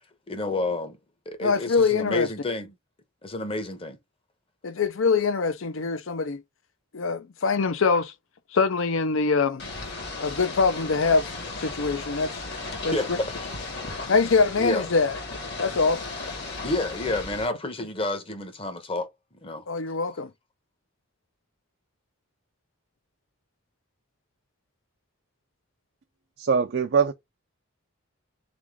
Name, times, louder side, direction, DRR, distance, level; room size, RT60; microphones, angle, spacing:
voice 1, 0.3-1.0 1.3-2.7 3.2-4.0 12.9-13.3 14.6-14.9 16.6-19.1 19.4-19.6 20.1-20.2, left 2 dB, 25° left, 0.8 m, -29 dB
voice 2, 1.4-2.3 4.6-6.4 6.9-8.1 8.5-9.6 10.2-11.3 11.6-12.4 12.8-12.9 14.1-15.2 15.6-16.0 19.7-20.3, left 4 dB, 70° left, 0.6 m, -23 dB
Ocean / Boat Water vehicle, 9.6-17.5, left 3 dB, 50° left, 1.5 m, -36 dB
voice 3, 26.4-27.1, right 6 dB, 50° right, 0.4 m, -22 dB
3.6 x 3.5 x 3.5 m
head